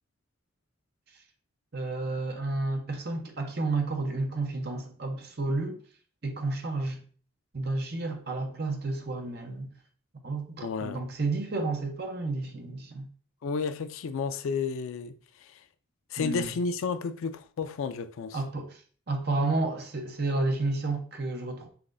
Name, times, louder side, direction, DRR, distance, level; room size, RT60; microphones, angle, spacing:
voice 1, 1.7-5.8 6.2-7.0 7.5-9.7 10.2-13.1 16.2-16.5 18.3-21.7, right 2 dB, 50° right, 0.7 m, -31 dB
voice 2, 10.6-11.0 13.4-15.6 16.1-18.4, left 5 dB, 75° left, 0.4 m, -32 dB
5.8 x 3.0 x 2.5 m
head